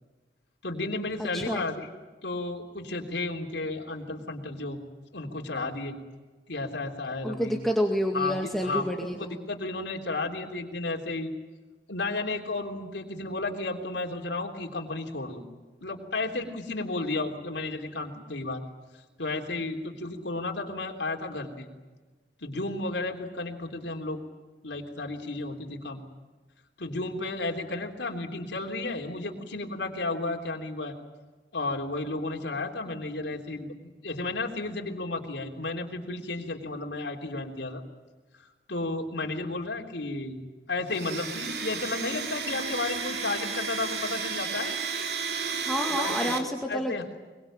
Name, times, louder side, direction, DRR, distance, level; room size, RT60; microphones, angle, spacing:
voice 1, 0.6-1.9 2.2-4.8 5.1-6.0 6.5-7.5 8.1-8.3 8.6-11.3 11.9-15.4 15.8-18.6 19.2-21.7 22.4-24.2 24.6-26.0 26.8-30.9 31.5-33.7 34.0-37.8 38.7-40.4 40.7-44.8 45.9-46.3 46.7-47.0, left 2 dB, 80° left, 1 dB, 3.4 m, -33 dB
voice 2, 1.2-1.6 7.2-9.4 45.6-47.0, equal, ahead, 1 dB, 2.1 m, -29 dB
Domestic sounds home sounds, 40.9-46.4, right 5 dB, 65° right, 3.2 m, -32 dB
23.5 x 23.0 x 8.9 m, 1.2 s
head